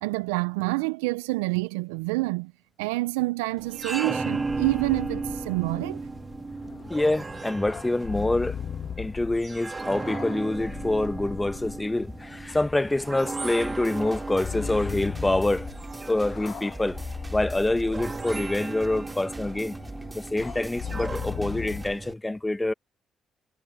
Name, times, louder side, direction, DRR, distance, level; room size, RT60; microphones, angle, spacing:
voice 1, 0.0-2.5 2.8-6.0, right 23 dB, 85° right, 0.7 m, -27 dB
sound 1, 3.6-22.1, right 3 dB, 30° right, 1.8 m, -36 dB
sound 2, 4.5-21.9, left 8 dB, 55° left, 2.1 m, -39 dB
voice 2, 6.9-8.6 9.0-15.7 16.1-17.0 17.3-19.7 20.1-22.7, left 2 dB, 15° left, 1.2 m, -26 dB
sound 3, 13.6-21.9, right 2 dB, 15° right, 4.4 m, -43 dB
hypercardioid pair, 45°, 0 cm